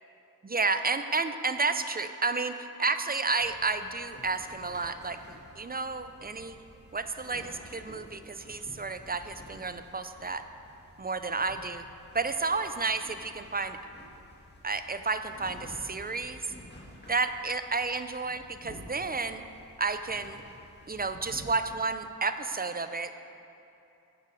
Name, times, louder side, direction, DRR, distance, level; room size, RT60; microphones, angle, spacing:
voice 1, 0.4-6.6 6.9-10.4 11.0-11.8 12.1-13.8 14.6-16.4 17.1-19.4 19.8-20.4 20.9-23.1, right 4 dB, 25° right, 10 dB, 0.4 m, -31 dB
sound 1, 3.4-21.7, left 1 dB, 30° left, 2.0 m, -51 dB
8.3 x 6.6 x 5.1 m, 2.8 s
cardioid pair, 40°, 37 cm